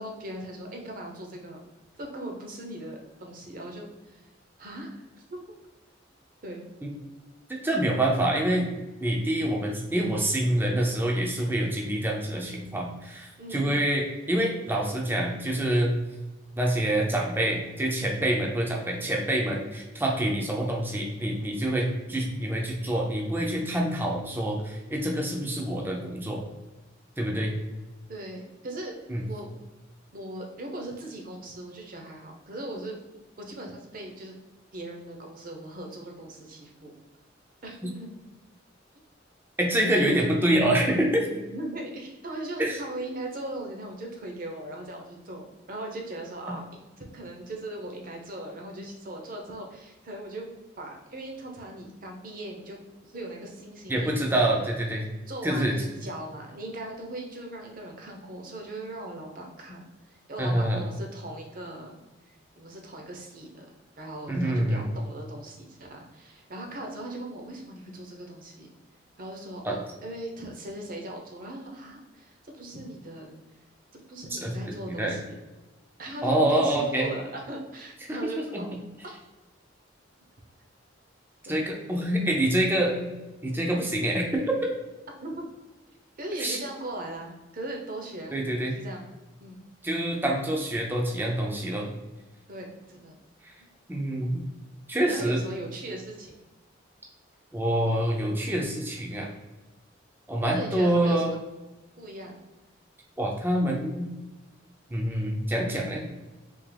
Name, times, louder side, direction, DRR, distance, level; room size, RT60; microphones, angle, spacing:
voice 1, 0.0-1.6 2.0-4.2 4.6-5.4 6.4-6.6 13.4-13.8 28.1-28.9 29.3-29.5 30.1-33.0 33.4-34.4 34.7-36.9 37.6-38.1 41.2-46.6 47.0-50.5 50.8-52.8 53.0-54.4 55.3-59.8 60.1-62.0 62.6-63.6 64.0-68.7 69.2-73.3 73.9-75.4 76.0-78.7 79.0-79.2 81.4-81.6 85.2-85.4 86.2-88.4 88.6-89.1 89.4-89.6 92.5-93.1 94.9-96.4 100.5-101.4 102.0-102.4, right 1 dB, 45° right, 1 dB, 0.8 m, -39 dB
voice 2, 7.5-8.7 9.0-16.0 16.6-26.4 27.2-27.5 29.1-29.2 39.6-41.3 42.6-42.8 53.9-55.1 55.4-55.7 60.4-60.8 64.3-64.8 69.6-69.8 74.3-75.2 76.2-77.1 78.0-78.6 81.5-83.1 83.4-84.6 86.4-86.6 88.3-88.7 89.8-91.9 93.9-94.4 94.9-95.4 97.5-99.3 100.3-101.3 103.2-104.1 104.9-106.1, right 1 dB, 10° right, -1 dB, 0.5 m, -26 dB
3.6 x 2.9 x 3.3 m, 1.1 s
head